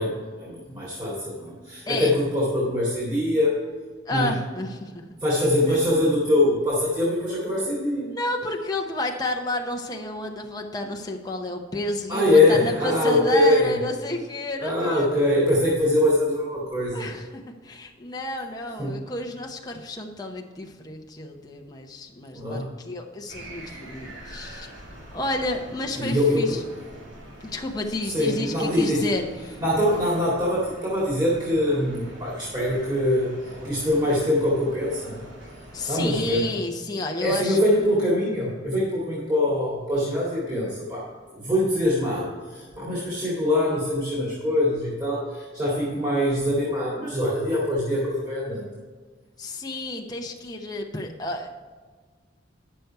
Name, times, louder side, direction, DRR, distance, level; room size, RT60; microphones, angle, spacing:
voice 1, 0.0-3.6 4.1-4.3 5.2-8.1 12.1-13.8 14.6-17.0 18.8-18.9 22.3-22.7 23.6-23.7 25.9-26.6 28.0-29.0 29.6-33.4 33.6-35.2 35.9-36.4 37.2-48.7, left 1 dB, 25° right, -7 dB, 2.2 m, -23 dB
voice 2, 1.9-2.2 4.1-5.2 8.1-15.1 16.9-17.3 17.6-24.7 25.1-26.6 27.4-29.6 35.7-37.6 49.4-51.5, left 1 dB, 20° left, 1 dB, 0.8 m, -31 dB
sound 1, 23.3-36.5, right 1 dB, 80° right, 2.4 m, -44 dB
10.0 x 6.7 x 4.6 m, 1.5 s
head